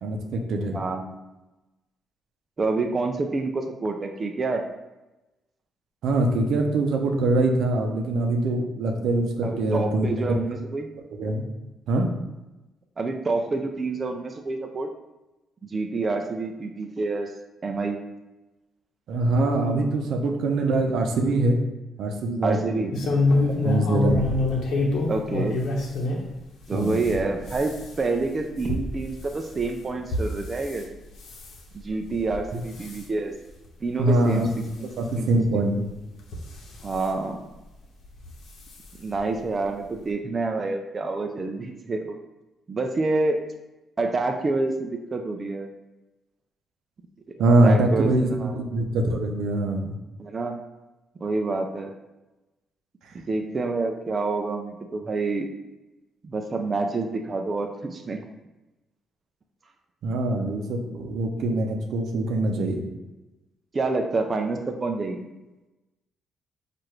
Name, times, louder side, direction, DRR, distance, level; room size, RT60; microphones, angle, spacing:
voice 1, 0.0-0.8 6.0-10.4 11.1-11.5 11.9-12.1 19.1-21.6 22.0-23.1 23.6-24.2 26.7-27.0 34.0-34.5 35.0-35.9 47.4-50.0 60.0-62.8, right 2 dB, 75° right, 3 dB, 0.6 m, -23 dB
voice 2, 0.7-1.2 2.6-4.6 9.4-10.9 13.0-14.9 15.7-17.3 17.6-18.0 22.4-22.9 25.1-25.6 26.7-30.8 31.7-33.3 33.8-34.5 34.8-34.9 35.2-35.3 35.6-35.7 36.8-37.4 39.0-42.2 42.7-43.4 44.0-45.7 47.3-48.6 50.2-50.6 51.2-51.9 53.1-55.5 56.2-58.2 63.7-65.3, right 3 dB, 35° right, 3 dB, 0.4 m, -27 dB
sound 1, 22.9-26.2 26.7-30.8 31.2-31.6 32.1-32.4 32.7-33.0 33.6-33.7 34.1-34.2 35.3-35.4 36.2-37.0 38.2-38.3 38.7-38.8 39.1-39.2, left 2 dB, 75° left, 0.9 m, -26 dB
4.7 x 2.5 x 4.5 m, 1.0 s
cardioid pair, 90°, 0 cm